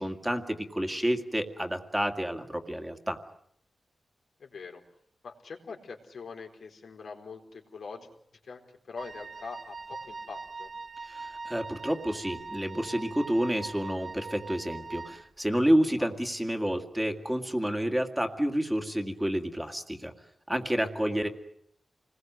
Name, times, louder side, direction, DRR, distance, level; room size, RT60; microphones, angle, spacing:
voice 1, 0.0-3.2 11.1-20.1 20.5-21.3, equal, 5° right, 5 dB, 2.1 m, -29 dB
voice 2, 4.4-4.8 5.2-8.1 8.4-10.7 16.0-16.1 21.1-21.3, left 4 dB, 85° left, 3 dB, 4.3 m, -43 dB
Wind instrument woodwind instrument, 9.0-15.3, right 4 dB, 50° right, 2.1 m, -42 dB
28.0 x 21.0 x 7.9 m, 0.70 s
wide cardioid pair, 155°, 0 cm